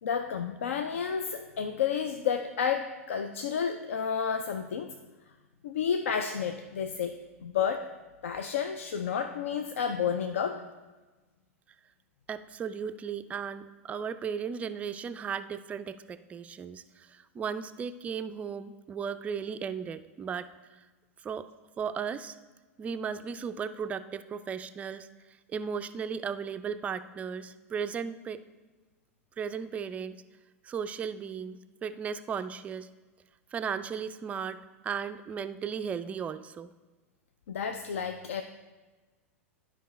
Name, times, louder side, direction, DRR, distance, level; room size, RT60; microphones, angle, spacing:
voice 1, 0.0-4.9 5.6-7.9 8.2-10.6 37.5-38.4, left 7 dB, 65° left, 7 dB, 0.4 m, -31 dB
voice 2, 12.3-20.8 21.2-21.5 21.8-22.4 22.8-25.1 25.5-28.4 29.4-30.2 30.6-32.9 33.5-36.7, right 7 dB, 20° right, 11 dB, 0.3 m, -36 dB
12.0 x 5.1 x 3.1 m, 1.2 s
figure-of-eight pair, 90°, 8 cm